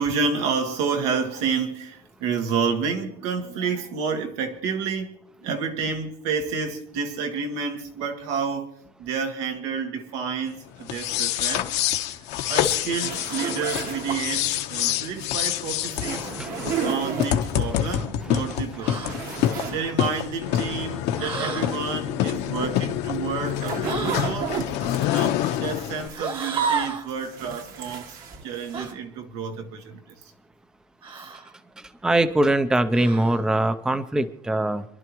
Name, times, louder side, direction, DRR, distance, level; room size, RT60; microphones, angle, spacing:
voice 1, 0.0-8.7 9.0-11.7 12.5-16.6 16.8-19.2 19.7-24.6 25.1-28.2 28.4-30.0 31.1-31.3, right 5 dB, 90° right, 1.8 m, -29 dB
sound 1, 10.8-26.1, left 12 dB, 70° left, 1.1 m, -27 dB
sound 2, 13.0-14.5 15.9-17.6 18.2-18.3 18.7-19.8 20.1-20.2 23.1-26.9 27.2-28.9, right 6 dB, 50° right, 1.3 m, -33 dB
voice 2, 16.0-17.1 17.5-20.0 20.6-20.8 21.1-21.5 31.8-34.9, right 1 dB, 5° right, 0.5 m, -26 dB
sound 3, 18.8-19.2 21.2-21.7 23.8-24.3 26.1-27.1 28.7-28.9 31.0-31.5 32.9-33.4, right 5 dB, 25° right, 1.2 m, -30 dB
27.0 x 11.0 x 3.1 m
cardioid pair, 145°, 19 cm